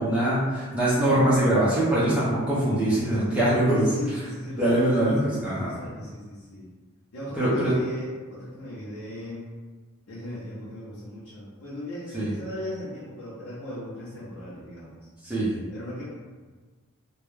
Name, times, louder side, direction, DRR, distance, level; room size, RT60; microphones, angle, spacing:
voice 1, 0.0-3.9 4.6-5.8 7.3-7.7 12.1-12.3 15.2-15.6, right 1 dB, 5° right, -10 dB, 0.5 m, -23 dB
voice 2, 3.7-6.7 7.1-9.4 10.1-15.0 15.7-16.0, equal, 80° left, -10 dB, 0.7 m, -37 dB
2.3 x 2.0 x 3.1 m, 1.4 s
head